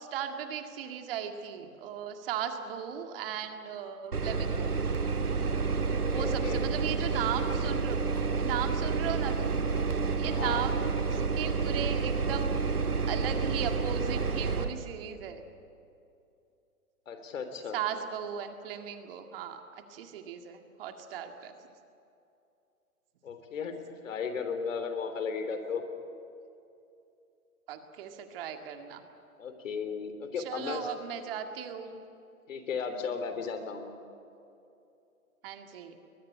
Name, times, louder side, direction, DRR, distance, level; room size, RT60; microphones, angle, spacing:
voice 1, 0.1-4.7 5.8-8.0 8.4-9.5 10.1-11.0 11.4-12.5 13.1-15.4 17.7-19.6 19.9-21.5 27.7-29.0 30.5-32.0 35.4-35.9, right 8 dB, 40° right, 6 dB, 2.1 m, -37 dB
sound 1, 4.1-14.7, right 4 dB, 90° right, 2.0 m, -29 dB
voice 2, 6.0-6.6 10.2-10.7 17.1-17.8 23.2-23.7 24.0-25.8 29.4-30.9 32.5-33.9, left 5 dB, 60° left, 8 dB, 3.4 m, -35 dB
22.0 x 20.5 x 8.7 m, 2.7 s
hypercardioid pair, 130°, 44 cm